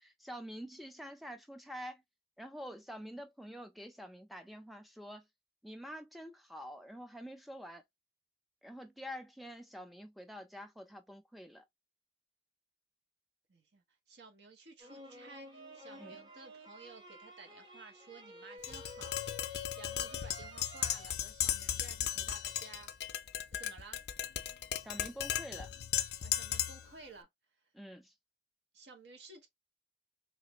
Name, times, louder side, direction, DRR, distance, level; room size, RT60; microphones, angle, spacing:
voice 1, 0.0-2.0 2.4-5.2 5.6-7.8 8.6-11.6 16.0-16.2 24.8-25.7 27.7-28.1, equal, ahead, 0.4 m, -47 dB
voice 2, 13.5-22.9 23.6-24.0 26.2-27.3 28.7-29.5, right 4 dB, 70° right, 0.9 m, -55 dB
sound 1, 14.8-21.1, right 1 dB, 25° right, 1.0 m, -52 dB
Tap, 18.6-26.9, left 11 dB, 65° left, 0.4 m, -36 dB
3.2 x 2.5 x 2.9 m
head